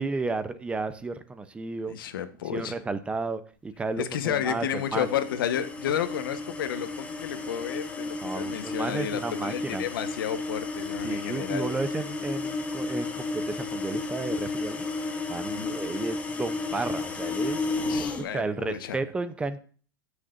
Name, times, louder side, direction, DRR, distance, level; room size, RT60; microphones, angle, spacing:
voice 1, 0.0-2.0 2.4-5.1 8.2-9.9 11.0-14.8 15.3-17.6 18.3-19.6, right 3 dB, 10° right, 0.7 m, -32 dB
voice 2, 1.9-2.7 4.0-11.7 15.4-15.8 17.8-19.0, left 10 dB, 85° left, 1.3 m, -32 dB
sound 1, 4.3-18.3, left 3 dB, 10° left, 1.2 m, -33 dB
16.0 x 6.5 x 2.6 m
supercardioid pair, 145°, 11 cm